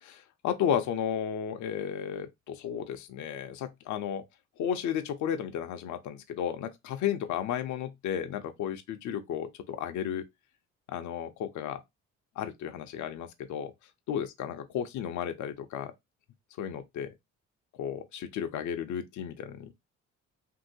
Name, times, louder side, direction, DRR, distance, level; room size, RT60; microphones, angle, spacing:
voice 1, 0.0-4.2 4.6-10.2 10.9-11.8 12.4-13.7 14.1-15.9 16.6-17.1 17.8-19.7, left 9 dB, 75° left, 0.6 m, -33 dB
2.9 x 2.7 x 2.7 m
cardioid pair, 90°, 30 cm